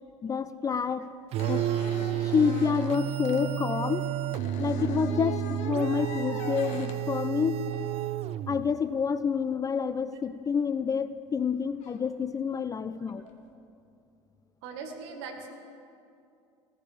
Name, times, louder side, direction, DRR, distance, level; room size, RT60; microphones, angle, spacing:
voice 1, 0.2-1.1 1.4-1.6 2.2-4.0 4.6-7.6 8.5-13.2, left 6 dB, 20° left, 14 dB, 0.4 m, -28 dB
sound 1, 1.0-1.1 1.4-3.5 4.3-7.0 7.7-7.9 10.8-10.9 11.8-12.1 13.1-13.3, left 5 dB, 50° left, 1.3 m, -42 dB
sound 2, 1.3-8.8, right 12 dB, 40° right, 0.4 m, -31 dB
voice 2, 14.6-15.5, right 5 dB, 65° right, 3 dB, 2.0 m, -40 dB
16.0 x 15.0 x 3.7 m, 2.5 s
figure-of-eight pair, 70°, 16 cm